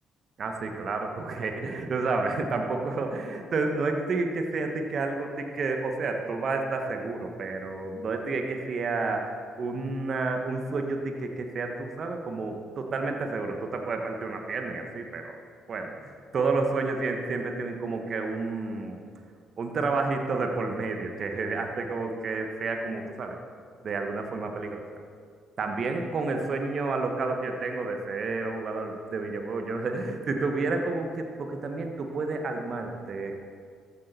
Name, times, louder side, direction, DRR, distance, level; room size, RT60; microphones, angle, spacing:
voice 1, 0.4-15.4 15.7-19.0 19.6-23.4 23.8-24.8 25.6-33.4, right 3 dB, 50° right, 4 dB, 1.3 m, -30 dB
14.5 x 8.4 x 4.4 m, 2.1 s
hypercardioid pair, 50°, 0 cm